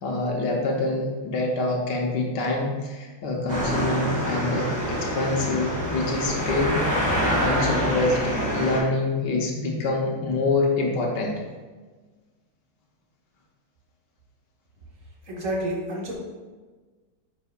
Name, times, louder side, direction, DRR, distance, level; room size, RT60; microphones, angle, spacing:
voice 1, 0.0-11.3, left 2 dB, 75° left, 0 dB, 1.6 m, -26 dB
sound 1, 3.5-8.8, equal, 10° right, 1.9 m, -26 dB
voice 2, 15.3-16.1, right 1 dB, 50° right, -3 dB, 1.8 m, -29 dB
9.5 x 6.0 x 2.4 m, 1.4 s
omnidirectional pair, 1.9 m